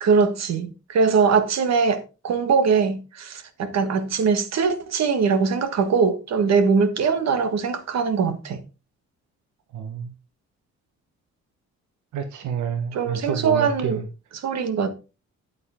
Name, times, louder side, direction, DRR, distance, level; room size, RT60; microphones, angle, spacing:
voice 1, 0.0-8.6 12.9-14.0 14.3-14.9, right 5 dB, 65° right, 1.5 m, -22 dB
voice 2, 9.7-10.1 12.1-14.0, right 7 dB, 80° right, 1.1 m, -28 dB
9.7 x 8.8 x 3.5 m
cardioid pair, 120°, 29 cm